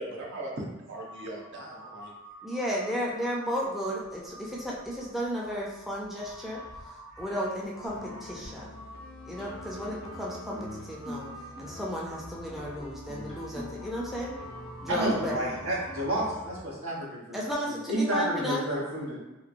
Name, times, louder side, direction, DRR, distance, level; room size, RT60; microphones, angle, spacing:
voice 1, 0.0-2.1, right 1 dB, 60° right, -2 dB, 0.7 m, -39 dB
Crow, 0.9-16.4, right 1 dB, 40° right, 1.3 m, -49 dB
voice 2, 2.4-8.8 9.3-11.3 11.6-14.4 14.8-15.4 17.3-18.6, equal, ahead, -4 dB, 0.4 m, -34 dB
sound 1, 7.9-16.6, left 1 dB, 75° left, 0.4 m, -46 dB
sound 2, 9.4-16.8, left 2 dB, 25° right, 0.9 m, -46 dB
voice 3, 14.9-19.2, right 1 dB, 85° right, -5 dB, 1.0 m, -30 dB
2.9 x 2.9 x 2.5 m, 1.1 s
head